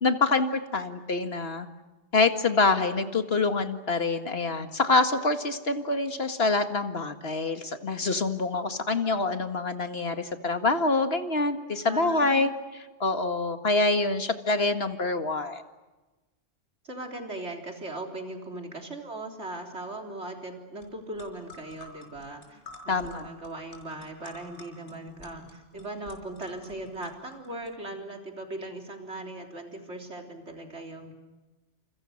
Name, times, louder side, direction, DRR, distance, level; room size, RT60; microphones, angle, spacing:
voice 1, 0.0-1.7 2.1-12.5 13.0-15.6 22.9-23.3, left 3 dB, 60° left, 8 dB, 2.2 m, -26 dB
voice 2, 11.8-12.5 16.8-31.1, right 2 dB, 75° right, 3 dB, 4.0 m, -39 dB
sound 1, 20.8-20.9 21.1-27.7, left 2 dB, 85° left, 5.8 m, -50 dB
29.5 x 28.5 x 6.6 m, 1.1 s
omnidirectional pair, 1.2 m